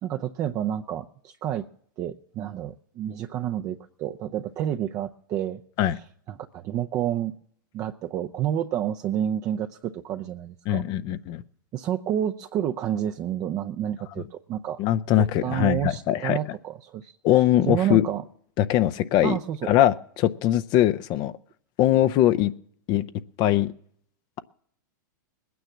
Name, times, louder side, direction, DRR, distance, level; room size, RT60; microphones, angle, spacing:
voice 1, 0.0-1.7 2.0-5.6 6.3-7.4 7.7-10.8 11.7-14.8 15.1-17.1 17.7-18.2 19.2-19.8, right 10 dB, 30° right, 0.6 m, -29 dB
voice 2, 10.7-11.4 14.8-16.4 17.2-18.1 18.6-19.4 19.7-21.3 21.8-22.5 22.9-23.0 23.4-23.7, left 12 dB, 40° left, 0.6 m, -21 dB
19.5 x 9.4 x 7.2 m
hypercardioid pair, 135°, 11 cm